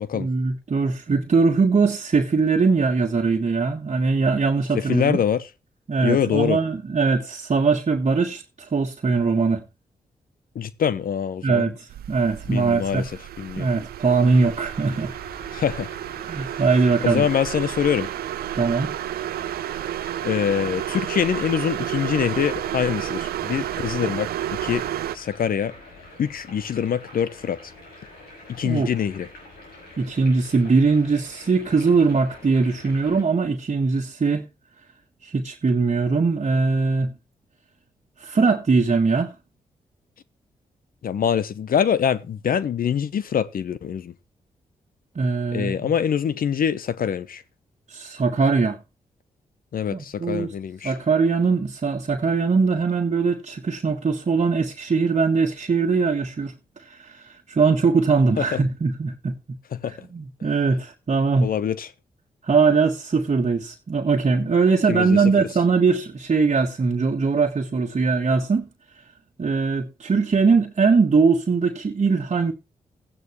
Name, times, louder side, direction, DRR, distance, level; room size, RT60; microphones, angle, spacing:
voice 1, 0.1-5.2 5.9-9.6 11.4-13.0 13.6-15.1 16.2-17.3 18.5-18.9 28.6-28.9 30.0-34.4 35.2-37.1 38.2-39.3 45.1-45.9 47.9-48.8 49.9-50.5 50.8-59.3 59.9-61.5 62.4-68.7 69.4-72.5, right 4 dB, 45° right, 1.5 m, -21 dB
voice 2, 4.7-5.4 6.0-6.6 10.5-11.7 12.5-13.1 13.4-13.7 15.5-15.9 17.0-18.1 20.2-24.3 24.6-24.8 25.1-25.7 26.2-27.7 28.5-29.3 41.0-44.1 45.5-47.4 49.7-50.9 58.4-58.6 59.7-60.1 61.4-61.9 64.9-65.2, left 8 dB, 65° left, 1.0 m, -24 dB
sound 1, 11.9-25.2, right 12 dB, 75° right, 0.5 m, -31 dB
sound 2, 14.3-33.2, left 2 dB, 85° left, 6.2 m, -46 dB
15.0 x 9.4 x 3.1 m
supercardioid pair, 40°, 16 cm